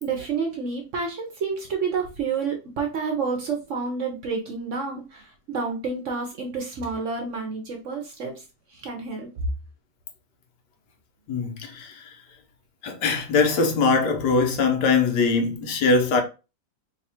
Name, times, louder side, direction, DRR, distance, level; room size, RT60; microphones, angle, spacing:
voice 1, 0.0-8.4 8.7-9.3, right 5 dB, 60° right, 0.9 m, -29 dB
voice 2, 11.3-11.9 12.8-16.2, left 4 dB, 80° left, 1.4 m, -22 dB
3.2 x 2.3 x 4.2 m
omnidirectional pair, 1.8 m